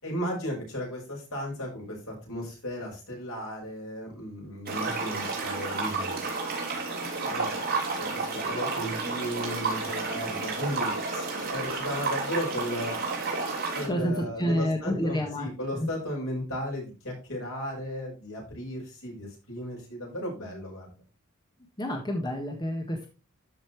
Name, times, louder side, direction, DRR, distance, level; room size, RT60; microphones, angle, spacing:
voice 1, 0.0-6.2 7.1-7.7 8.0-13.0 13.7-21.0, equal, 75° left, -1 dB, 5.8 m, -35 dB
sound 1, 4.7-13.9, right 3 dB, 45° right, 3.5 m, -31 dB
voice 2, 13.9-15.5 15.8-15.9 21.8-23.1, equal, 20° left, 2 dB, 1.5 m, -28 dB
13.0 x 5.6 x 3.3 m, 0.31 s
head